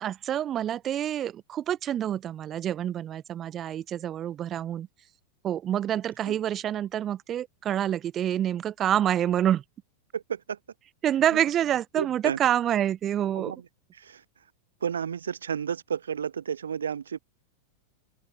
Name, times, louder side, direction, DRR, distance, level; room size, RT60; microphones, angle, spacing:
voice 1, 0.0-4.9 5.4-9.6 11.0-13.5, right 10 dB, 30° right, 0.9 m, -27 dB
voice 2, 10.1-10.6 11.9-12.4 13.3-13.6 13.9-14.2 14.8-17.2, right 7 dB, 70° right, 2.4 m, -32 dB
open air
figure-of-eight pair, 90°, 0 cm